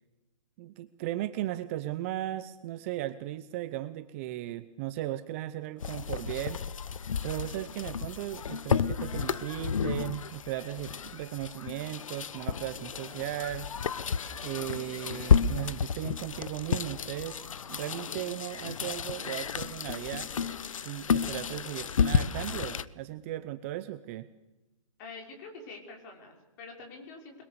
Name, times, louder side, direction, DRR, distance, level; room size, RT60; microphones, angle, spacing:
voice 1, 0.6-6.6 7.2-13.7 14.4-17.4 17.7-20.3 20.8-24.3, right 14 dB, 25° right, 12 dB, 0.7 m, -36 dB
sound 1, 5.8-22.8, left 6 dB, 70° left, 1.2 m, -31 dB
voice 2, 25.0-27.4, left 3 dB, 30° left, 2 dB, 6.0 m, -46 dB
28.5 x 22.0 x 6.9 m, 1.0 s
hypercardioid pair, 160°, 17 cm